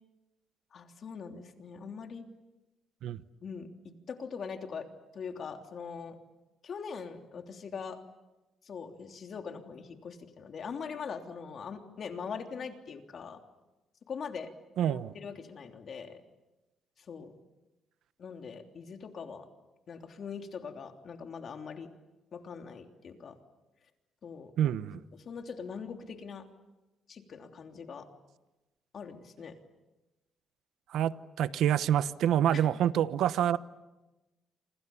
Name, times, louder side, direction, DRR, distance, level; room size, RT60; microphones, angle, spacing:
voice 1, 0.7-2.2 3.4-4.9 5.1-6.2 6.6-8.0 8.6-13.4 14.1-14.5 14.9-16.2 17.1-17.3 18.2-19.5 19.9-21.9 22.3-23.4 24.2-24.7 25.1-26.4 27.1-28.1 28.9-29.5 32.5-32.6, left 6 dB, 55° left, 4 dB, 3.2 m, -42 dB
voice 2, 14.8-15.1 24.6-25.0 30.9-33.6, right 10 dB, 80° right, 14 dB, 1.0 m, -27 dB
28.5 x 26.0 x 7.2 m, 1.1 s
cardioid pair, 90°, 0 cm